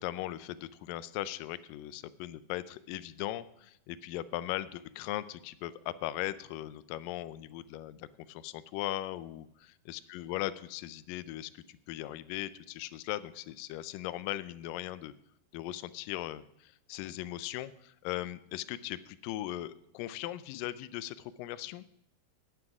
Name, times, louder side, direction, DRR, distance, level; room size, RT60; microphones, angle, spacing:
voice 1, 0.0-15.1 15.5-21.8, left 14 dB, 80° left, 16 dB, 2.1 m, -39 dB
17.0 x 6.1 x 6.0 m, 0.79 s
omnidirectional pair, 4.3 m